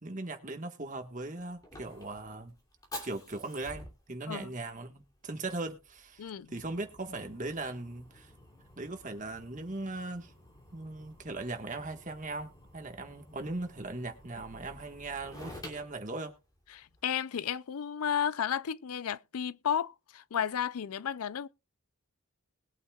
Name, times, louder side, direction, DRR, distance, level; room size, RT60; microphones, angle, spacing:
voice 1, 0.0-2.5 3.0-8.3 8.8-10.3 10.7-16.3, right 2 dB, 35° right, 1.5 m, -39 dB
Fire, 0.8-17.0, left 1 dB, 15° left, 2.9 m, -51 dB
voice 2, 6.2-6.5 16.7-21.5, left 8 dB, 85° left, 0.5 m, -33 dB
21.0 x 8.4 x 2.4 m
head